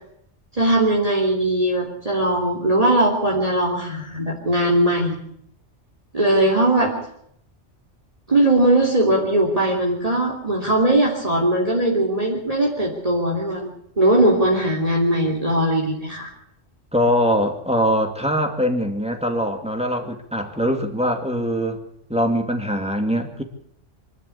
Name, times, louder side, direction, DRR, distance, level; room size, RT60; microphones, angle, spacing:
voice 1, 0.6-5.2 6.1-6.9 8.3-13.7 14.0-16.3, right 1 dB, 30° right, -2 dB, 3.2 m, -19 dB
voice 2, 16.9-21.8 22.1-23.4, equal, 5° right, 4 dB, 2.3 m, -22 dB
24.5 x 12.5 x 8.6 m, 0.71 s
omnidirectional pair, 1.2 m